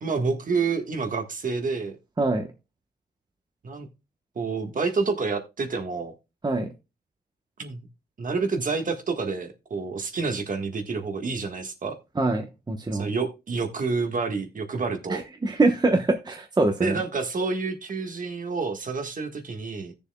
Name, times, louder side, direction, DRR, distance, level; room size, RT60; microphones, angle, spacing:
voice 1, 0.0-2.0 3.6-3.9 4.3-6.1 7.6-7.8 8.2-12.0 12.9-15.2 16.8-19.9, right 4 dB, 55° right, 1.5 m, -28 dB
voice 2, 12.2-13.1 15.1-16.9, right 2 dB, 25° right, 1.0 m, -24 dB
17.0 x 6.9 x 2.3 m
wide cardioid pair, 125°, 17 cm